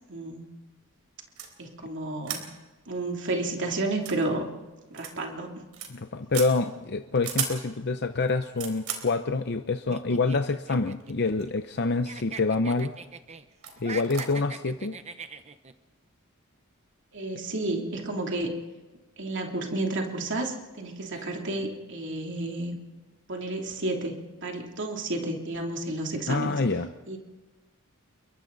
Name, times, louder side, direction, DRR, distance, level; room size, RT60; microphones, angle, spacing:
voice 1, 0.1-0.5 1.6-2.4 2.9-4.5 4.9-5.6 17.1-18.6 19.2-22.8 23.3-26.6 27.1-27.2, right 2 dB, 55° right, 1 dB, 3.0 m, -31 dB
sound 1, 1.4-1.5 2.2-2.5 2.8-2.9 3.2-3.3 3.9-4.2 4.9-5.1 5.5-5.9 6.3-6.5 7.1-7.6 8.2-9.1 10.1-10.2 11.0-11.6 11.8-12.3 12.8-13.0 13.6-13.8 14.0-14.2, right 8 dB, 75° right, 4.0 m, -34 dB
voice 2, 5.9-12.9 13.8-15.0 26.3-26.9, left 3 dB, 50° left, 8 dB, 0.7 m, -27 dB
sound 2, 9.9-11.8 12.0-13.4 13.8-15.7, right 5 dB, 30° right, 0.9 m, -41 dB
28.5 x 23.5 x 4.0 m, 1.2 s
head